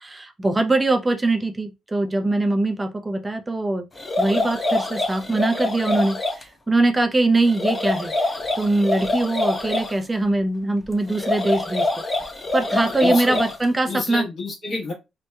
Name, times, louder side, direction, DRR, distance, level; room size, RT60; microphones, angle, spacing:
voice 1, 0.0-3.9 4.2-8.3 8.6-11.9 12.5-14.3, right 2 dB, 20° right, 0.3 m, -22 dB
sound 1, 4.0-6.4 7.5-9.9 11.1-13.6, left 2 dB, 25° left, 0.6 m, -25 dB
voice 2, 12.7-13.4 13.9-14.9, left 3 dB, 55° left, 1.1 m, -29 dB
2.7 x 2.0 x 2.2 m
cardioid pair, 90°, 0 cm